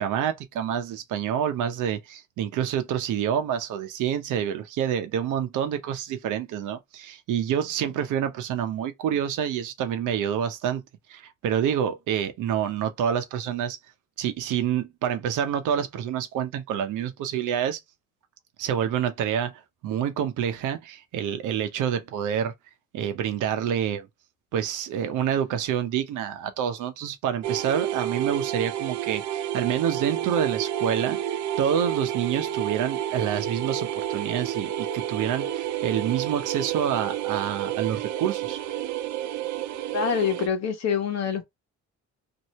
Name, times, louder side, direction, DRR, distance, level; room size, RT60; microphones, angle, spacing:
voice 1, 0.0-10.8 11.1-13.8 14.2-17.8 18.6-22.5 22.9-24.1 24.5-38.6, right 9 dB, 90° right, 0.8 m, -27 dB
sound 1, 27.4-40.5, right 11 dB, 70° right, 0.5 m, -30 dB
voice 2, 39.9-41.4, left 7 dB, 60° left, 1.1 m, -25 dB
2.8 x 2.7 x 3.0 m
cardioid pair, 90°, 30 cm